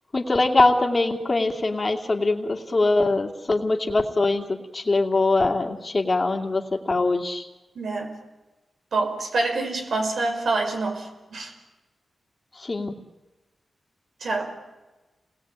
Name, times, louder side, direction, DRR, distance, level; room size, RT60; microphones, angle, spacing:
voice 1, 0.1-4.5 4.7-7.5 12.6-13.0, left 2 dB, 35° left, 3 dB, 2.5 m, -22 dB
voice 2, 7.8-8.2 8.9-11.5 14.2-14.5, right 3 dB, 75° right, 4 dB, 5.2 m, -26 dB
29.5 x 20.0 x 8.9 m, 1.1 s
wide cardioid pair, 110°, 0 cm